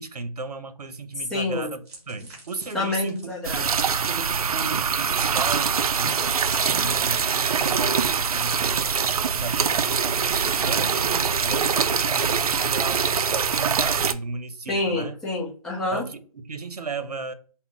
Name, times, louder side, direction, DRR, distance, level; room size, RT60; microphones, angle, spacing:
voice 1, 0.0-3.3 3.9-8.9 9.3-15.1 15.9-17.3, right 3 dB, 90° right, 0.8 m, -35 dB
voice 2, 1.3-1.7 2.7-3.8 5.3-5.4 14.7-16.0, left 2 dB, 5° left, 0.7 m, -27 dB
sound 1, 1.8-3.4 5.4-7.6, right 2 dB, 45° right, 2.3 m, -46 dB
sound 2, 3.4-14.1, right 6 dB, 70° right, 0.5 m, -23 dB
5.7 x 2.2 x 3.6 m
hypercardioid pair, 160°, 20 cm